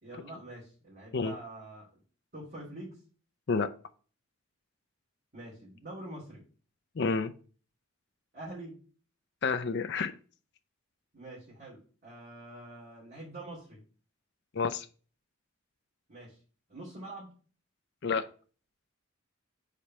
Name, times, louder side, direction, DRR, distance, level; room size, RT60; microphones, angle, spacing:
voice 1, 0.0-1.9 2.3-3.0 5.3-6.4 8.3-8.7 11.1-13.8 16.1-16.4 16.7-17.3, right 1 dB, 50° right, -8 dB, 2.9 m, -45 dB
voice 2, 7.0-7.3 9.4-10.1 14.5-14.9 18.0-18.3, left 4 dB, 55° left, 9 dB, 0.5 m, -29 dB
5.1 x 4.3 x 6.0 m, 0.40 s
head